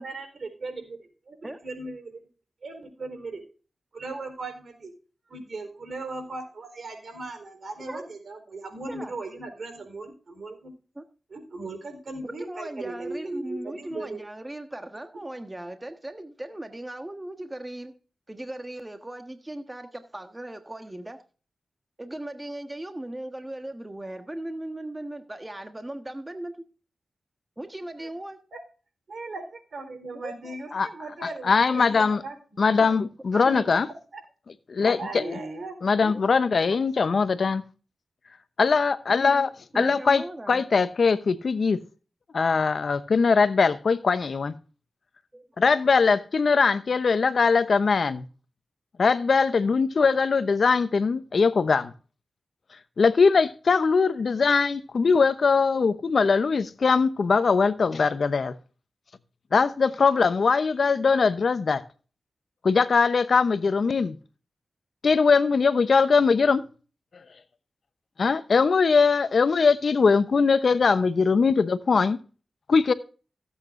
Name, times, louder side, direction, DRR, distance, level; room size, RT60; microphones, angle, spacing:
voice 1, 0.0-1.0 1.4-2.2 2.6-3.4 3.9-4.9 5.3-10.7 11.3-14.2 28.0-28.1 28.5-28.6 29.1-33.0 34.1-34.2 35.0-35.8, right 2 dB, 65° right, 4.1 m, -38 dB
voice 2, 12.2-17.9 18.3-21.2 22.0-26.6 27.6-28.4 30.2-30.3 33.3-33.7 36.0-36.2 36.6-36.8 39.7-40.7 45.3-45.5, right 1 dB, 20° right, 1.4 m, -38 dB
voice 3, 31.4-32.2 32.6-33.9 34.7-35.3 35.8-37.6 38.6-41.8 42.3-44.5 45.6-48.2 49.0-51.9 53.0-58.5 59.5-61.8 62.6-64.2 65.0-66.6 68.2-72.2 72.7-72.9, left 5 dB, 70° left, 0.8 m, -21 dB
16.5 x 8.3 x 2.6 m
cardioid pair, 50°, 0 cm